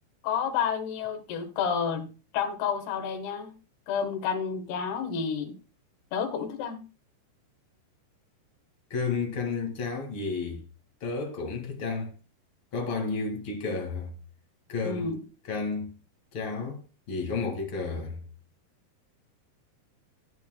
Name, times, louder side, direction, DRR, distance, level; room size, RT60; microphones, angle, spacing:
voice 1, 0.2-2.1 2.3-3.5 3.9-5.5 6.1-6.8 14.8-15.2, left 7 dB, 75° left, 3.2 m, -30 dB
voice 2, 8.9-10.6 11.0-12.1 12.7-14.1 14.7-15.1 15.5-15.9 16.3-16.8 17.1-18.2, left 4 dB, 40° left, 2.1 m, -31 dB
15.0 x 9.2 x 2.2 m
omnidirectional pair, 4.7 m